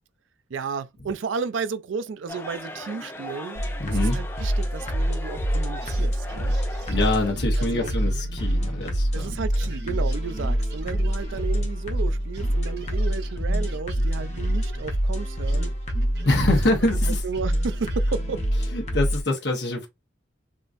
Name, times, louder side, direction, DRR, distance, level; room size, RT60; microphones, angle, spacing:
voice 1, 0.5-3.6 3.9-6.6 7.6-8.0 9.1-15.7 16.8-18.4, right 5 dB, 85° right, 0.4 m, -33 dB
sound 1, 2.3-7.3, left 1 dB, 10° left, 0.4 m, -39 dB
sound 2, 3.6-19.2, equal, 35° left, 0.9 m, -26 dB
voice 2, 3.8-4.2 6.9-9.4 16.2-17.2 18.7-19.9, left 2 dB, 65° left, 1.0 m, -25 dB
sound 3, 5.8-12.1 12.3-18.6, right 1 dB, 60° right, 1.1 m, -42 dB
3.7 x 2.5 x 2.5 m
head